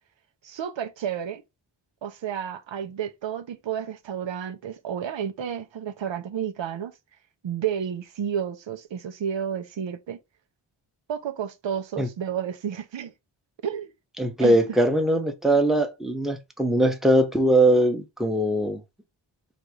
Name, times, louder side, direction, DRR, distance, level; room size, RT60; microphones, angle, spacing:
voice 1, 0.4-1.4 2.0-6.9 7.4-10.2 11.1-13.1 13.6-13.9 14.4-14.6, right 8 dB, 85° right, 0.8 m, -31 dB
voice 2, 14.2-18.8, right 1 dB, ahead, 0.8 m, -21 dB
4.1 x 2.6 x 4.8 m
wide cardioid pair, 120°, 44 cm